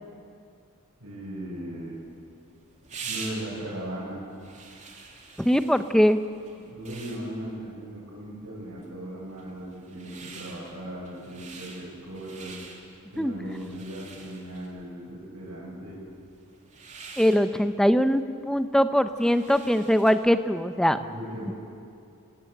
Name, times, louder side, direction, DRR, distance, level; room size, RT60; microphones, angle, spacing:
voice 1, 1.0-2.0 3.0-4.2 6.5-12.5 13.1-16.0 21.0-21.5, right 1 dB, 90° right, -6 dB, 6.6 m, -38 dB
sound 1, 1.8-20.4, right 4 dB, 35° right, 2.8 m, -46 dB
voice 2, 5.4-6.2 13.2-13.3 17.2-21.0, equal, ahead, 10 dB, 0.8 m, -22 dB
30.0 x 17.0 x 8.1 m, 2.5 s
head